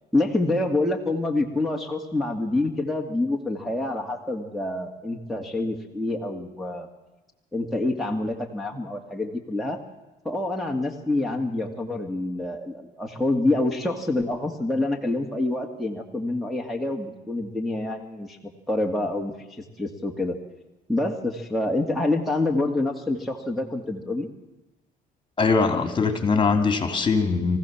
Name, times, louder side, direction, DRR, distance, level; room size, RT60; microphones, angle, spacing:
voice 1, 0.1-6.9 7.5-9.8 10.2-20.4 20.9-24.3, left 2 dB, ahead, -1 dB, 2.3 m, -27 dB
voice 2, 25.4-27.6, left 4 dB, 30° left, 8 dB, 3.1 m, -21 dB
24.5 x 15.5 x 7.3 m, 1.1 s
cardioid pair, 110°, 17 cm